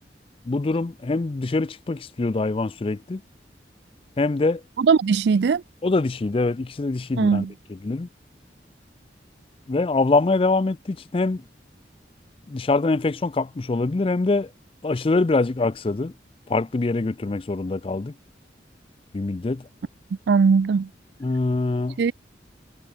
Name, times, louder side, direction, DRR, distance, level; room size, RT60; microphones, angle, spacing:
voice 1, 0.5-3.2 4.2-4.6 5.8-8.1 9.7-11.4 12.5-14.5 14.8-16.1 16.5-18.1 19.1-19.6 21.2-22.0, left 3 dB, 30° left, 0.4 m, -24 dB
voice 2, 4.8-5.6 7.2-7.5 20.3-20.9 22.0-22.1, right 5 dB, 70° right, 0.4 m, -19 dB
head